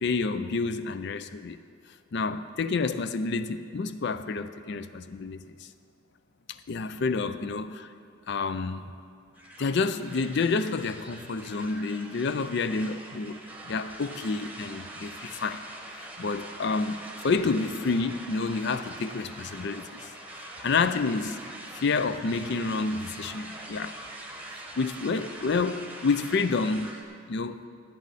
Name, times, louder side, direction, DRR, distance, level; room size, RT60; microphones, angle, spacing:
voice 1, 0.0-1.6 2.1-5.7 6.5-7.9 8.3-8.9 9.6-13.4 13.6-15.6 15.9-17.0 17.2-20.1 20.4-21.4 21.7-24.0 24.8-27.0 27.3-27.6, left 4 dB, 55° left, 12 dB, 0.4 m, -29 dB
sound 1, 9.3-27.0, right 1 dB, 5° right, 1.0 m, -43 dB
17.0 x 8.3 x 4.1 m, 2.3 s
head